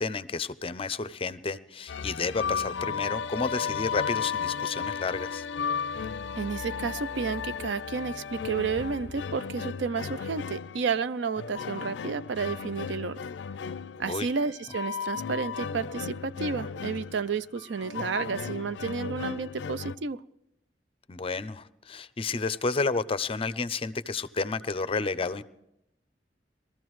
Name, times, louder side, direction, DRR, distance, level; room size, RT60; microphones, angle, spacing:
voice 1, 0.0-5.5 14.0-14.3 21.1-25.4, left 4 dB, 30° left, 15 dB, 0.5 m, -31 dB
sound 1, 1.9-20.0, left 6 dB, 90° left, 0.4 m, -35 dB
voice 2, 6.4-13.2 14.0-20.2, right 5 dB, 85° right, 15 dB, 0.5 m, -31 dB
21.5 x 14.0 x 3.1 m, 0.84 s
head